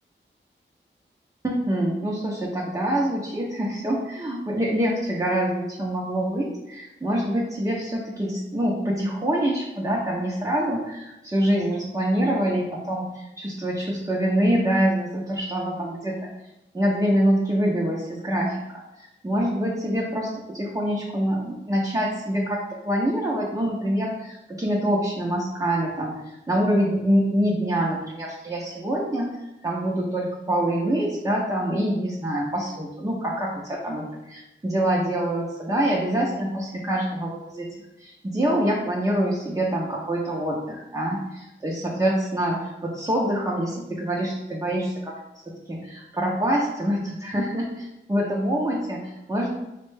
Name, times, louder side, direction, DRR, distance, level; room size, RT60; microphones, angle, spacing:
voice 1, 1.4-16.3 16.7-18.5 19.2-29.4 29.6-37.7 38.0-45.2 45.5-49.5, right 1 dB, 15° right, -4 dB, 0.6 m, -25 dB
4.2 x 2.1 x 3.2 m, 0.92 s
wide cardioid pair, 75°, 21 cm